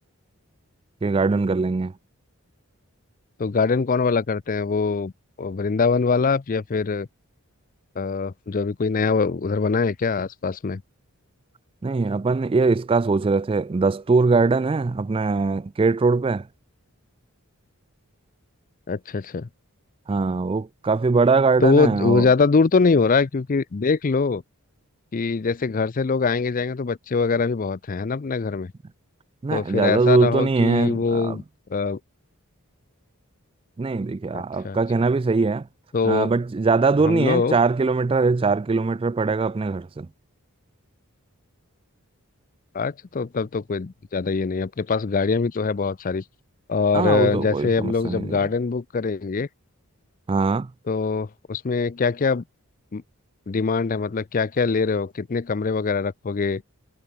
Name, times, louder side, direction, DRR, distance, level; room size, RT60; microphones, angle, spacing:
voice 1, 1.0-1.9 11.8-16.5 20.1-22.3 29.4-31.4 33.8-35.7 36.0-40.1 46.9-48.3 50.3-50.7, right 4 dB, 25° right, 0.3 m, -21 dB
voice 2, 3.4-5.1 5.4-7.1 8.0-10.8 18.9-19.5 21.6-24.4 25.1-28.7 29.5-31.4 31.7-32.0 34.3-34.8 35.9-36.3 37.0-37.6 42.7-46.2 46.7-49.5 50.9-52.4 52.9-53.0 53.5-56.6, left 4 dB, 40° left, 0.4 m, -23 dB
head